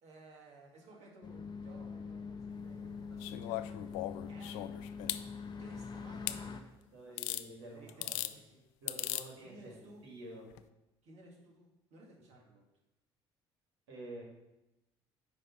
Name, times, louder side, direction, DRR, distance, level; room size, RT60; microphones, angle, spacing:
voice 1, 0.0-4.0 4.3-4.7 5.6-7.4 7.7-8.6 9.4-10.1 11.0-12.7, right 2 dB, 55° right, -1 dB, 2.0 m, -57 dB
Outdoor ambience, 1.2-6.6, left 5 dB, 30° left, 0.8 m, -44 dB
sound 1, 3.2-5.2 6.3-6.4 7.2-7.4 7.9-8.3 8.9-9.3 10.5-10.6, left 16 dB, 65° left, 0.4 m, -38 dB
voice 2, 6.9-8.3 8.8-10.5 13.9-14.2, right 1 dB, 80° right, -1 dB, 2.0 m, -49 dB
9.8 x 3.3 x 5.3 m, 0.95 s
figure-of-eight pair, 55°, 14 cm